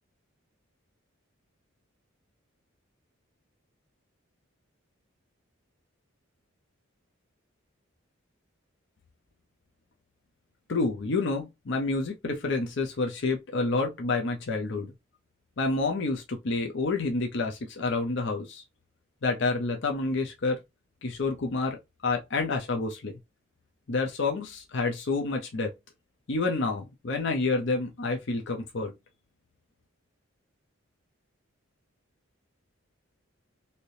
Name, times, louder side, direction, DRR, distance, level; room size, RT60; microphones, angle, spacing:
voice 1, 10.7-14.9 15.6-18.6 19.2-20.6 21.0-23.1 23.9-25.7 26.3-28.9, left 3 dB, 55° left, 0.6 m, -29 dB
3.3 x 2.8 x 2.6 m
head